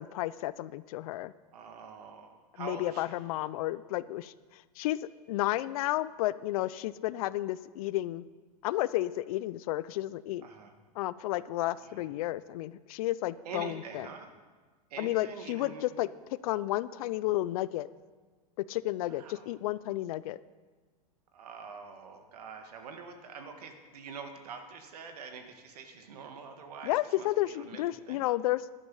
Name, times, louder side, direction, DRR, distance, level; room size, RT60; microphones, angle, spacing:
voice 1, 0.0-1.3 2.6-4.3 4.8-5.0 5.3-8.2 8.6-10.4 11.0-14.1 15.0-16.1 16.4-17.9 18.6-20.4 26.8-28.6, left 16 dB, 65° left, 18 dB, 0.5 m, -32 dB
voice 2, 1.5-3.2 10.4-10.8 11.7-12.1 13.4-14.3 14.9-15.9 19.1-19.5 21.3-28.2, right 5 dB, 75° right, 6 dB, 1.8 m, -45 dB
13.0 x 11.0 x 5.6 m, 1.4 s
hypercardioid pair, 105°, 20 cm